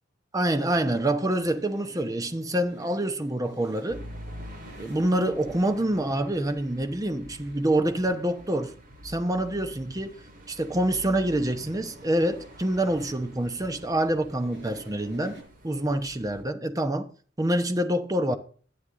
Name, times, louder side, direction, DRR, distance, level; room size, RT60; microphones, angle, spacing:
voice 1, 0.3-4.1 4.8-8.7 9.0-10.2 10.5-15.4 15.6-17.1 17.4-18.4, right 1 dB, 20° right, 0.9 m, -26 dB
sound 1, 0.7-15.4, right 1 dB, 75° right, 5.5 m, -51 dB
sound 2, 3.9-16.4, equal, 50° right, 2.0 m, -47 dB
11.5 x 9.6 x 3.7 m
head